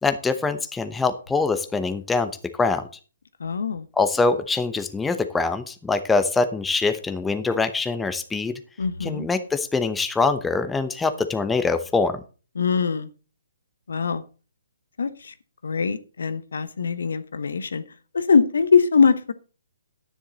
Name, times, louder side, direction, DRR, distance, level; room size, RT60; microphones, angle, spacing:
voice 1, 0.0-2.3 2.6-2.9 4.0-8.6 9.0-12.2, left 4 dB, 10° left, 9 dB, 0.8 m, -24 dB
voice 2, 3.4-3.9 8.8-9.3 12.5-13.1 13.9-14.2 15.0-15.3 15.6-17.8 18.1-19.3, left 5 dB, 75° left, 13 dB, 1.1 m, -22 dB
10.0 x 10.0 x 4.0 m, 0.35 s
hypercardioid pair, 140°, 0 cm